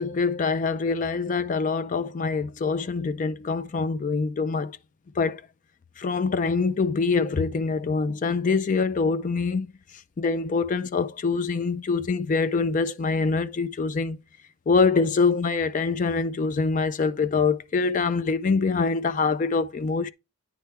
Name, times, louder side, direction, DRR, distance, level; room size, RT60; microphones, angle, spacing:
voice 1, 0.0-4.8 5.2-5.4 6.0-9.7 10.2-14.2 14.7-20.1, left 4 dB, 35° left, 0.4 m, -24 dB
9.3 x 3.3 x 4.5 m
head